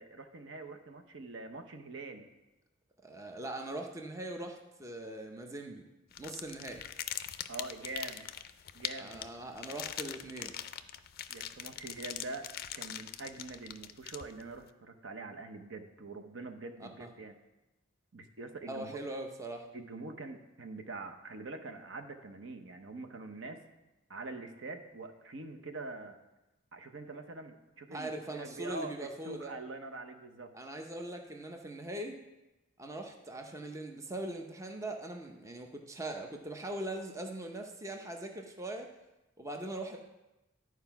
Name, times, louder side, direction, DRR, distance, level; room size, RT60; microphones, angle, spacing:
voice 1, 0.0-2.3 7.5-8.3 8.7-9.2 11.3-12.5 12.7-17.4 18.1-19.0 19.7-23.6 24.1-26.2 26.7-30.5, right 3 dB, 65° right, 6 dB, 0.8 m, -44 dB
voice 2, 3.0-5.9 6.2-6.8 8.9-10.5 16.8-17.1 18.7-19.7 27.9-29.5 30.5-32.2 32.8-38.9 39.4-40.0, right 1 dB, 15° right, 3 dB, 0.6 m, -41 dB
sound 1, 6.1-14.6, left 11 dB, 50° left, 0.4 m, -42 dB
11.0 x 4.7 x 5.8 m, 1.0 s
head